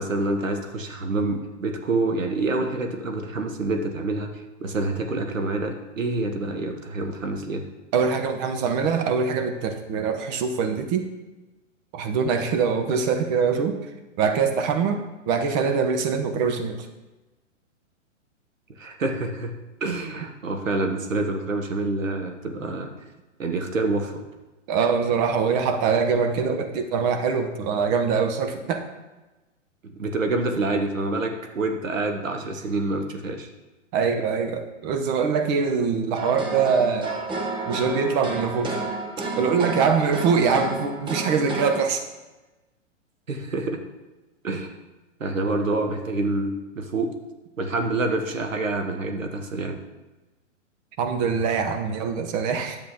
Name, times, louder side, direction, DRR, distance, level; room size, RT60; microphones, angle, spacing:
voice 1, 0.0-4.3 4.6-7.6 18.8-19.5 19.8-22.9 23.4-24.2 29.8-33.5 43.3-43.8 44.4-44.7 45.2-47.1 47.6-49.8, right 2 dB, 90° right, 5 dB, 1.3 m, -27 dB
voice 2, 7.9-11.1 11.9-13.8 14.2-15.0 15.3-16.9 24.7-28.8 33.9-37.1 37.7-38.8 39.4-42.0 51.0-52.8, right 5 dB, 35° right, 6 dB, 1.1 m, -23 dB
sound 1, 36.1-41.8, right 3 dB, 15° right, 0.9 m, -31 dB
10.5 x 7.4 x 3.7 m, 1.1 s
hypercardioid pair, 125°, 38 cm